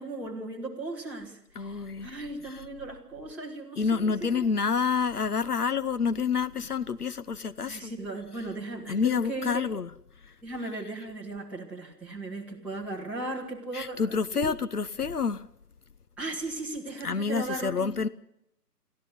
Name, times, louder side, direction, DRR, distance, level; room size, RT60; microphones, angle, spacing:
voice 1, 0.0-4.4 7.7-9.5 10.4-14.6 16.2-17.9, right 2 dB, 5° right, 2.0 m, -37 dB
voice 2, 1.6-2.1 3.8-7.9 8.9-9.9 10.2-10.3 13.7-15.4 17.0-18.1, left 5 dB, 65° left, 1.0 m, -28 dB
23.0 x 15.0 x 9.8 m
figure-of-eight pair, 150°, 49 cm